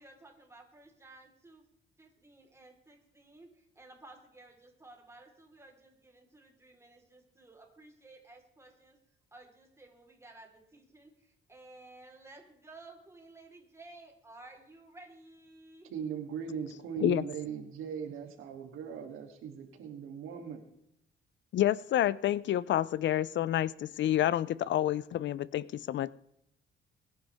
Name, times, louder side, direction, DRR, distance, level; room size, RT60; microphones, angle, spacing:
voice 1, 0.0-1.6 2.0-9.0 9.3-15.9, right 2 dB, 15° right, 1 dB, 4.0 m, -55 dB
voice 2, 15.8-20.6, right 7 dB, 90° right, 3 dB, 2.9 m, -39 dB
voice 3, 21.5-26.1, left 12 dB, 65° left, 19 dB, 0.5 m, -29 dB
22.5 x 10.5 x 3.5 m, 0.77 s
cardioid pair, 120°, 21 cm